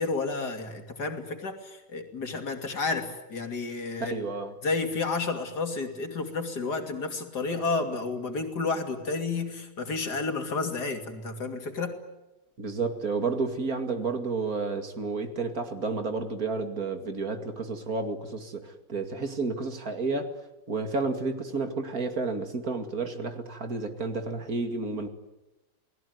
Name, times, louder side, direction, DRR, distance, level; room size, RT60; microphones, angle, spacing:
voice 1, 0.0-4.2 4.6-12.0, left 3 dB, 65° left, 6 dB, 3.3 m, -31 dB
voice 2, 4.0-4.5 12.6-20.3 20.7-25.1, right 4 dB, 55° right, 7 dB, 2.7 m, -31 dB
29.0 x 19.5 x 9.4 m, 1.0 s
omnidirectional pair, 1.8 m